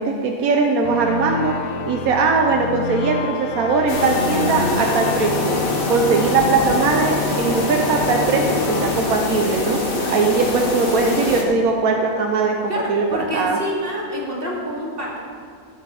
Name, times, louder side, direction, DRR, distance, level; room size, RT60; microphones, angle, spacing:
voice 1, 0.0-1.6 1.9-5.6 5.9-9.8 10.1-13.6, right 4 dB, 90° right, 2 dB, 1.3 m, -20 dB
sound 1, 0.8-10.2, left 7 dB, 80° left, 1.1 m, -29 dB
sound 2, 3.9-11.4, left 2 dB, 40° left, 1.6 m, -23 dB
voice 2, 12.7-15.2, equal, 40° right, -5 dB, 2.8 m, -27 dB
14.0 x 5.5 x 7.1 m, 2.2 s
omnidirectional pair, 1.4 m